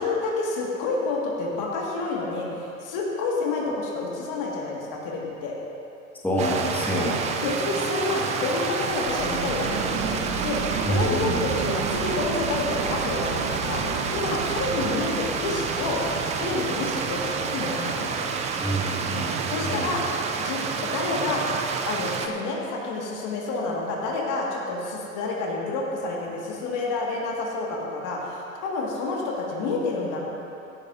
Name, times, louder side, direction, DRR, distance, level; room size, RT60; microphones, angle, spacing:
voice 1, 0.0-5.5 7.4-10.6 10.9-16.0 16.4-18.3 19.5-20.1 20.4-21.5 21.9-30.2, left 3 dB, 45° left, -2 dB, 2.1 m, -29 dB
voice 2, 6.2-7.2 10.8-11.4 18.6-19.3 19.6-19.9, right 1 dB, 5° left, -5 dB, 1.8 m, -26 dB
Stream, 6.4-22.3, right 5 dB, 15° right, 0.4 m, -29 dB
sound 1, 8.9-18.8, right 5 dB, 40° right, 1.2 m, -34 dB
15.5 x 11.0 x 2.7 m, 2.7 s
hypercardioid pair, 100°, 44 cm